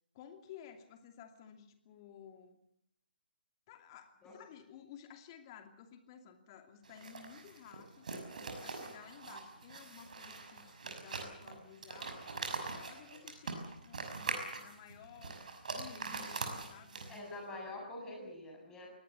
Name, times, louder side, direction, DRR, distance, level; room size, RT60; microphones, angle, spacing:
voice 1, 0.1-2.6 3.7-15.4 15.7-17.4, left 9 dB, 25° left, 7 dB, 2.6 m, -55 dB
sound 1, 6.8-17.4, right 4 dB, 50° right, 5.9 m, -43 dB
voice 2, 17.1-18.9, left 2 dB, 10° left, 0 dB, 6.9 m, -45 dB
23.0 x 18.5 x 8.3 m, 0.74 s
figure-of-eight pair, 140°, 5 cm